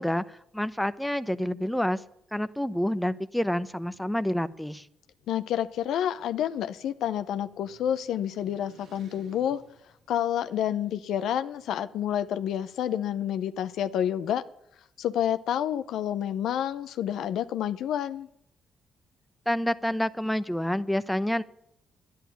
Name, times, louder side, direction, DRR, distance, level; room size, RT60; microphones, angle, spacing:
voice 1, 0.0-2.0 2.3-4.9 19.5-21.4, equal, 5° left, 12 dB, 0.9 m, -28 dB
voice 2, 5.3-9.6 10.1-14.4 15.0-18.3, left 10 dB, 80° left, 11 dB, 0.7 m, -29 dB
sound 1, 6.3-10.9, right 3 dB, 75° right, 3.6 m, -59 dB
11.0 x 10.5 x 9.1 m, 0.73 s
supercardioid pair, 65°, 0 cm